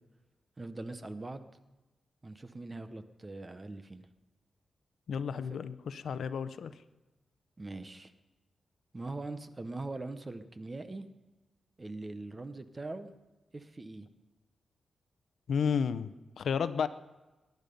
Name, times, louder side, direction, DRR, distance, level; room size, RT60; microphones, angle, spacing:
voice 1, 0.6-1.5 2.2-4.1 5.3-5.6 7.6-8.1 8.9-11.1 11.8-13.1 13.5-14.1, right 2 dB, 20° right, 10 dB, 0.8 m, -42 dB
voice 2, 5.1-6.7 15.5-16.9, left 6 dB, 75° left, 13 dB, 0.7 m, -32 dB
21.5 x 10.5 x 5.3 m, 1.1 s
wide cardioid pair, 160°, 0 cm